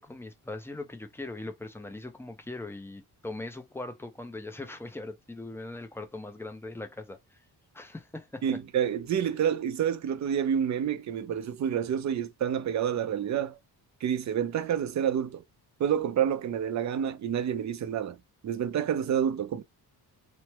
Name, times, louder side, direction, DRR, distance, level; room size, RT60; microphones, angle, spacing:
voice 1, 0.0-7.4 7.7-8.6, left 2 dB, 5° left, 0.5 m, -40 dB
voice 2, 8.4-13.6 14.0-15.4 15.8-18.2 18.4-19.6, right 9 dB, 45° right, 0.5 m, -28 dB
3.0 x 2.1 x 2.9 m
cardioid pair, 145°, 40 cm